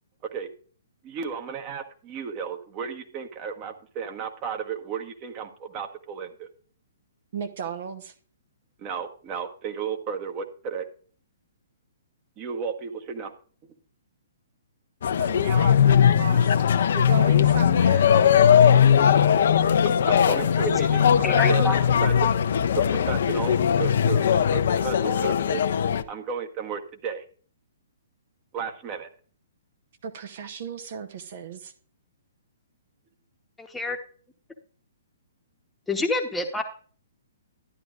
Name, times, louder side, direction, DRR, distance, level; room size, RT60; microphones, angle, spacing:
voice 1, 1.0-6.5 8.8-10.9 12.4-13.3 19.8-22.3 22.7-25.6 26.1-27.2 28.5-29.1, right 6 dB, 30° right, 1.2 m, -34 dB
voice 2, 7.3-8.1 15.2-18.1 30.0-31.7, right 6 dB, 55° right, 0.9 m, -35 dB
sound 1, 15.0-26.0, left 8 dB, 60° left, 0.6 m, -19 dB
voice 3, 20.3-20.7 21.2-21.8 33.6-34.0 35.9-36.6, left 2 dB, 5° left, 1.1 m, -28 dB
12.5 x 10.5 x 2.5 m
figure-of-eight pair, 125°, 0 cm